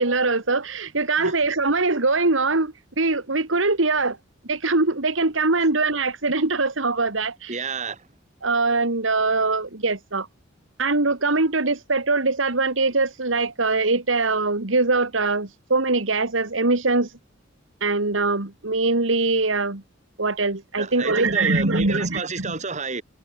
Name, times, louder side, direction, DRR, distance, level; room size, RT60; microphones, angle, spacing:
voice 1, 0.0-4.2 4.4-7.6 8.4-10.3 10.8-17.1 17.8-19.8 20.2-22.5, right 3 dB, 85° right, 2.4 m, -22 dB
voice 2, 7.5-8.1 20.8-23.0, right 4 dB, 40° right, 3.3 m, -30 dB
head